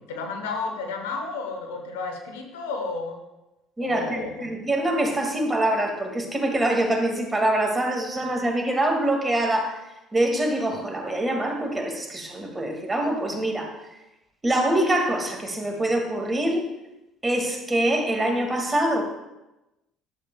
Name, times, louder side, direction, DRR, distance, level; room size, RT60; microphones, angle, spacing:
voice 1, 0.0-3.2 3.8-4.5, left 4 dB, 85° left, 4 dB, 1.0 m, -32 dB
voice 2, 3.8-9.8 10.1-13.7 14.4-16.7 17.2-19.1, right 1 dB, 20° right, 3 dB, 1.9 m, -24 dB
11.0 x 7.4 x 2.3 m, 0.97 s
hypercardioid pair, 60°, 0 cm